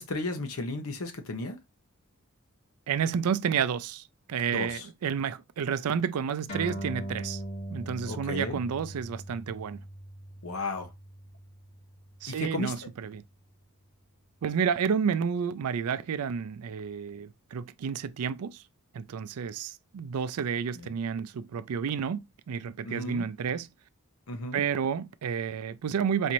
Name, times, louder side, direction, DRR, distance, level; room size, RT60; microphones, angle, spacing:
voice 1, 0.0-1.6 4.5-4.8 8.0-8.6 10.4-10.9 12.3-12.7 20.7-20.9 22.8-23.3 24.3-24.6, left 2 dB, 65° left, 0.9 m, -34 dB
voice 2, 2.9-7.4 7.7-9.8 12.2-13.2 14.4-18.6 18.9-23.7 24.5-26.3, right 7 dB, 80° right, 0.4 m, -30 dB
sound 1, 6.5-13.3, right 1 dB, 85° left, 2.3 m, -41 dB
4.2 x 2.6 x 2.9 m
head